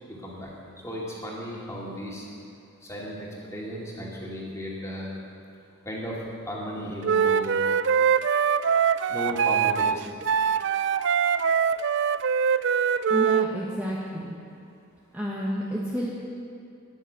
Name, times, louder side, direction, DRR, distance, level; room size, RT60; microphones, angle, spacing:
voice 1, 0.1-0.5 0.8-2.3 2.8-5.1 5.8-6.2 6.5-7.6 9.1-10.0, equal, 15° left, -4 dB, 2.6 m, -35 dB
Wind instrument woodwind instrument, 7.0-13.5, right 7 dB, 55° right, 0.4 m, -23 dB
voice 2, 13.1-14.3 15.1-16.1, equal, 10° right, -6 dB, 1.3 m, -30 dB
13.5 x 10.5 x 7.0 m, 2.4 s
head